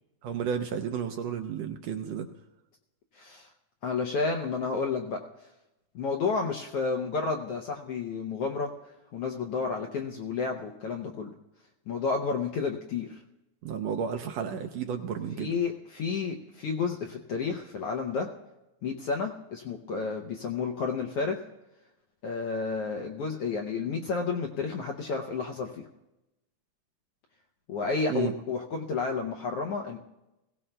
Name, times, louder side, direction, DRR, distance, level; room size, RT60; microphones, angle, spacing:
voice 1, 0.2-2.3 13.6-15.5 28.1-28.3, right 7 dB, 75° right, 5 dB, 1.6 m, -32 dB
voice 2, 3.1-3.5 3.8-5.2 5.9-11.3 11.9-13.2 15.3-18.3 18.8-21.4 22.2-25.9 27.7-30.0, left 4 dB, 75° left, 2 dB, 1.4 m, -31 dB
21.5 x 17.0 x 2.2 m, 0.98 s
omnidirectional pair, 3.5 m